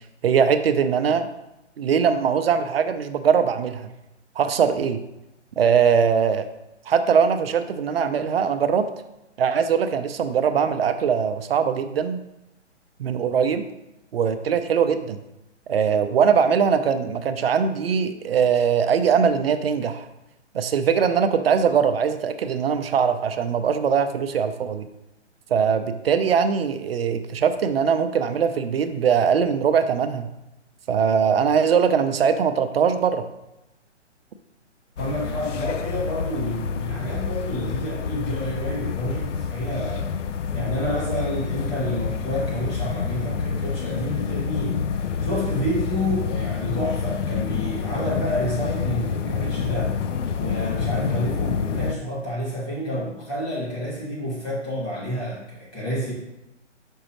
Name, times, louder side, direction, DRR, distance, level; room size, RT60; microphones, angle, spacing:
voice 1, 0.2-1.3 1.8-3.9 4.4-5.0 5.6-6.4 6.9-8.9 9.4-12.2 13.0-13.6 14.1-15.2 15.7-20.1 20.5-24.9 25.5-30.3 30.9-33.2, right 7 dB, 55° right, 9 dB, 0.6 m, -21 dB
sound 1, 35.0-52.0, left 6 dB, 80° left, 0.5 m, -28 dB
voice 2, 35.0-40.1 40.5-50.0 50.4-56.1, equal, 25° left, -8 dB, 2.2 m, -29 dB
6.1 x 5.5 x 3.0 m, 0.92 s
hypercardioid pair, 145°, 36 cm